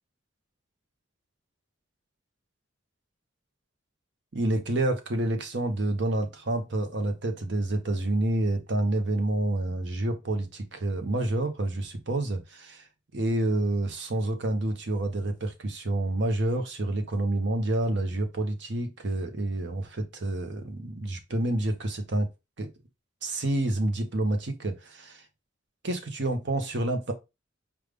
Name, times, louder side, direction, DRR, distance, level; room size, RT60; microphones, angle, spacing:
voice 1, 4.3-12.8 13.1-22.3 22.6-22.7 23.2-25.2 25.8-27.1, right 1 dB, 60° right, 0.8 m, -28 dB
5.1 x 2.4 x 3.3 m
head